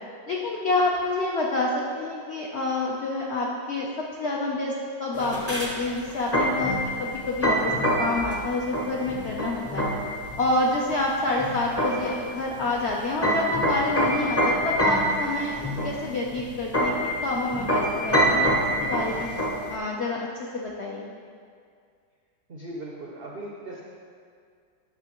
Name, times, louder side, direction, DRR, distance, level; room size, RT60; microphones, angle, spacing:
voice 1, 0.3-3.9 4.2-4.7 5.0-7.7 8.0-9.9 10.4-18.5 18.8-19.3 19.7-20.3 20.5-21.1, left 2 dB, 80° left, -2 dB, 0.5 m, -28 dB
sound 1, 5.1-19.8, equal, 25° left, 0.3 m, -26 dB
voice 2, 22.5-23.8, right 1 dB, 80° right, -3 dB, 0.5 m, -38 dB
9.0 x 6.1 x 3.0 m, 2.2 s
omnidirectional pair, 2.0 m